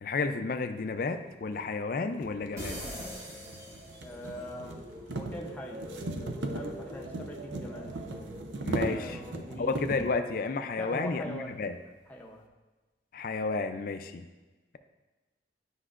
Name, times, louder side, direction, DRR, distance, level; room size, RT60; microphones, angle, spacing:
voice 1, 0.0-2.8 8.6-9.2 9.6-11.8 13.1-14.2, left 4 dB, 50° left, 8 dB, 0.4 m, -32 dB
sound 1, 1.3-1.4 2.1-10.2, right 2 dB, 85° right, 0.6 m, -38 dB
sound 2, 2.6-4.4, equal, 20° right, 1.6 m, -41 dB
sound 3, 3.2-10.4 10.8-11.2, right 1 dB, 55° right, 1.5 m, -47 dB
voice 2, 4.0-4.8 5.1-5.9 6.4-7.9 8.8-9.8 10.8-11.6 12.1-12.4, equal, 10° left, -1 dB, 0.6 m, -42 dB
9.9 x 5.4 x 2.4 m, 1.2 s
head